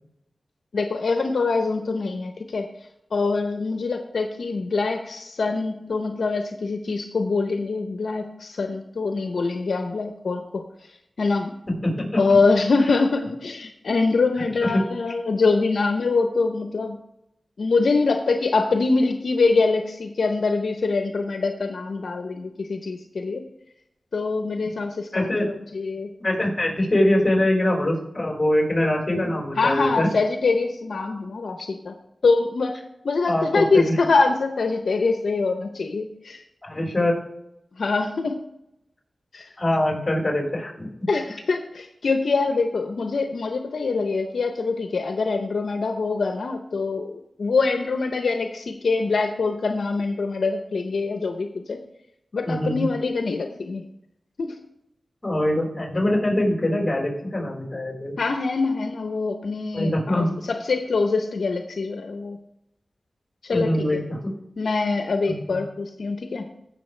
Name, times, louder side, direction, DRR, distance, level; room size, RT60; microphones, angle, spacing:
voice 1, 0.7-2.6 3.1-10.6 11.2-11.5 12.2-17.0 17.6-23.4 24.1-26.1 29.6-31.9 32.2-32.7 33.0-36.4 37.8-38.4 39.3-39.5 41.1-51.8 52.3-53.8 54.4-54.6 58.2-62.4 63.4-64.0 64.6-66.5, left 3 dB, 80° left, 5 dB, 0.7 m, -24 dB
voice 2, 11.7-12.4 14.6-14.8 25.1-25.5 26.2-30.1 33.3-34.0 36.6-37.2 39.6-41.1 52.4-52.9 55.2-58.1 59.7-60.4 63.5-64.3 65.3-65.6, left 1 dB, 30° left, -1 dB, 4.2 m, -23 dB
16.0 x 6.5 x 3.3 m, 0.83 s
cardioid pair, 60°, 0 cm